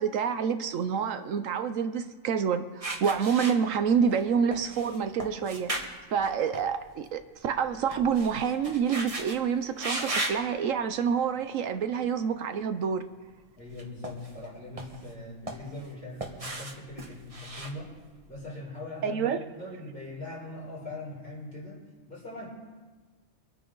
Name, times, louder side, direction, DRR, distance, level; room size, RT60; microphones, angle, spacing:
voice 1, 0.0-5.7 6.1-13.0 19.0-19.4, right 7 dB, 70° right, 9 dB, 1.1 m, -27 dB
sound 1, 2.8-4.2 4.5-7.1 7.4-9.4 9.8-10.4 11.1-11.3 13.6-14.5 14.8-15.9 16.2-18.3, right 2 dB, 25° right, 1.4 m, -36 dB
voice 2, 13.6-17.9 18.3-21.8 22.1-22.5, left 2 dB, 45° left, -6 dB, 5.2 m, -41 dB
24.5 x 9.2 x 3.9 m, 1.3 s
omnidirectional pair, 1.4 m